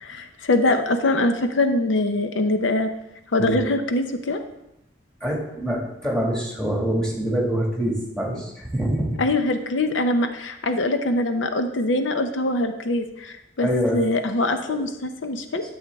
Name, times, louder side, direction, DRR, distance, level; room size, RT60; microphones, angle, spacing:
voice 1, 0.0-2.9 3.3-4.4 9.2-15.6, left 2 dB, 90° left, 7 dB, 0.7 m, -23 dB
voice 2, 5.2-9.2 13.6-14.1 14.7-14.8, equal, 5° left, -2 dB, 2.1 m, -25 dB
11.5 x 7.2 x 3.6 m, 0.85 s
head